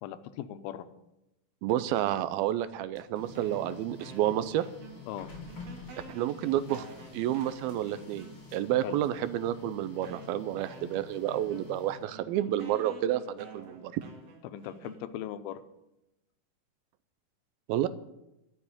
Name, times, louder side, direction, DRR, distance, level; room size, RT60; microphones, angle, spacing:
voice 1, 0.0-0.9 5.1-5.3 8.8-9.0 14.4-15.6, left 11 dB, 90° left, 11 dB, 2.6 m, -39 dB
voice 2, 1.6-4.7 6.1-6.9 7.1-14.0 17.7-17.9, right 12 dB, 85° right, 14 dB, 2.5 m, -30 dB
Printer, 2.7-12.4, left 4 dB, 40° left, 5.1 m, -49 dB
sound 1, 3.3-5.2 5.5-8.7 9.4-9.5 10.0-15.4, right 5 dB, 60° right, 3.3 m, -50 dB
12.5 x 7.1 x 9.8 m, 0.91 s
omnidirectional pair, 4.3 m